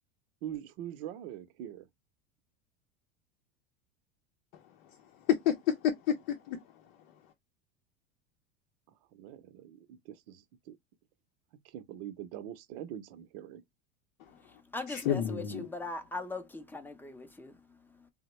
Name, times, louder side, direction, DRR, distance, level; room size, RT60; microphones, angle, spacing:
voice 1, 0.4-1.9 9.1-10.8 11.6-13.6, right 11 dB, 65° right, 0.7 m, -43 dB
voice 2, 5.3-6.6 14.2-14.3 14.9-15.7, left 9 dB, 65° left, 0.7 m, -30 dB
voice 3, 14.5-18.1, left 2 dB, 5° left, 0.6 m, -41 dB
3.4 x 2.1 x 3.0 m
supercardioid pair, 105°, 31 cm